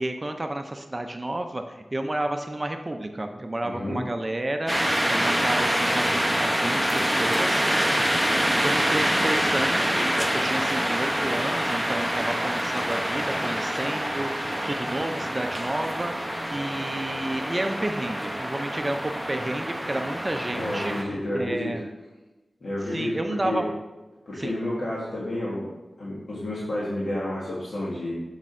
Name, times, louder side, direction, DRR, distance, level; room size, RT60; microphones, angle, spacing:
voice 1, 0.0-4.8 5.1-7.9 8.6-10.1 10.3-16.1 16.5-20.9 21.3-21.8 22.9-23.7 24.4-24.5, right 1 dB, 30° right, 5 dB, 0.5 m, -31 dB
voice 2, 3.6-4.0 20.5-21.7 22.6-23.6 24.2-25.6 26.0-28.1, left 1 dB, 70° left, -8 dB, 1.7 m, -30 dB
sound 1, 4.7-21.0, equal, 5° right, 0.8 m, -26 dB
7.2 x 3.9 x 4.4 m, 1.1 s
wide cardioid pair, 75°, 0 cm